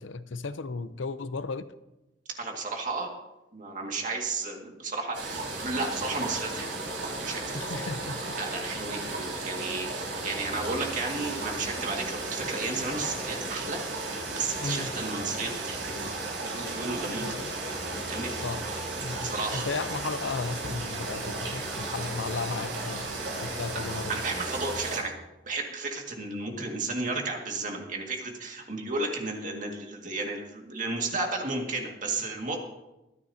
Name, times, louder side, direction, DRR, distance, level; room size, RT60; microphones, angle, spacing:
voice 1, 0.0-1.7 7.5-8.4 14.6-14.9 17.2-17.5 18.4-18.6 19.0-23.1 23.4-24.2, left 4 dB, 85° left, 13 dB, 0.7 m, -35 dB
voice 2, 2.4-3.1 3.5-6.8 7.2-7.6 8.4-13.8 14.3-16.1 16.4-17.4 18.1-18.5 19.2-19.7 24.1-25.1 25.5-32.6, right 3 dB, 45° right, 1 dB, 2.1 m, -33 dB
sound 1, 5.1-25.0, right 2 dB, 80° right, 5.1 m, -34 dB
24.5 x 9.4 x 2.8 m, 0.97 s
head